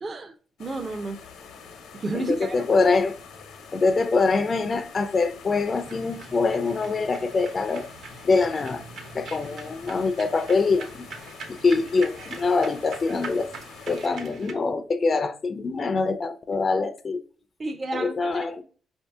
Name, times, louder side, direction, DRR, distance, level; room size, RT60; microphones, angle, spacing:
voice 1, 0.0-0.3 0.6-1.2 1.9-2.6 17.6-18.1, right 2 dB, 35° right, 0.5 m, -30 dB
sound 1, 0.6-14.1, left 6 dB, 80° left, 0.9 m, -46 dB
voice 2, 2.1-3.1 3.7-7.9 8.2-8.8 9.1-11.1 11.5-13.5 13.9-17.2 17.9-18.6, left 4 dB, 40° left, 0.4 m, -24 dB
sound 2, 5.6-14.5, right 4 dB, 70° right, 1.0 m, -43 dB
5.1 x 2.7 x 3.4 m
cardioid pair, 90°, 0 cm